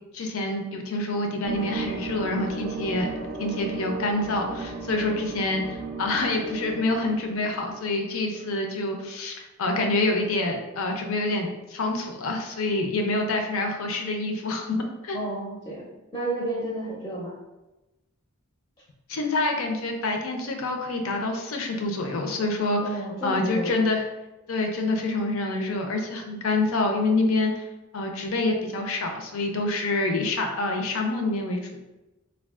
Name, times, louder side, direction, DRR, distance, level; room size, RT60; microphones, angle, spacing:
voice 1, 0.1-3.1 3.4-15.2 19.1-22.8 23.2-24.0 24.5-27.5 27.9-31.8, left 2 dB, 75° left, 3 dB, 0.5 m, -27 dB
sound 1, 1.4-8.5, right 3 dB, 50° right, 0.4 m, -35 dB
voice 2, 15.1-15.9 16.1-17.3 22.8-23.8, right 1 dB, 15° left, -5 dB, 0.5 m, -31 dB
3.4 x 2.3 x 2.3 m, 1.0 s
head